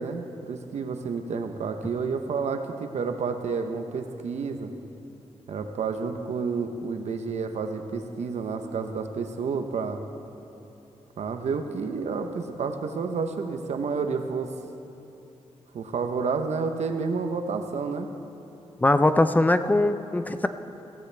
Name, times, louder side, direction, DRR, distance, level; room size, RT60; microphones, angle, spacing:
voice 1, 0.0-4.7 5.5-10.0 11.2-14.5 15.7-18.1, right 5 dB, 85° right, 6 dB, 0.9 m, -30 dB
voice 2, 18.8-20.5, left 2 dB, 15° left, 10 dB, 0.4 m, -21 dB
16.0 x 15.0 x 3.4 m, 2.9 s
wide cardioid pair, 150°, 11 cm